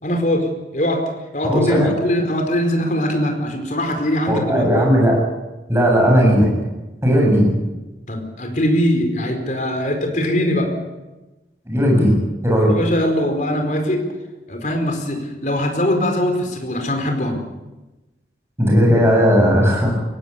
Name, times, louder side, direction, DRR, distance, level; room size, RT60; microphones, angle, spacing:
voice 1, 0.0-0.5 0.7-1.0 1.3-4.6 8.1-10.7 12.7-14.0 14.5-17.4, left 1 dB, 45° left, 4 dB, 4.6 m, -21 dB
voice 2, 1.4-1.9 4.3-5.2 5.7-6.5 7.0-7.5 11.7-12.1 12.4-12.7 18.6-19.9, equal, 15° right, -1 dB, 7.7 m, -15 dB
22.5 x 18.0 x 8.6 m, 1.1 s
head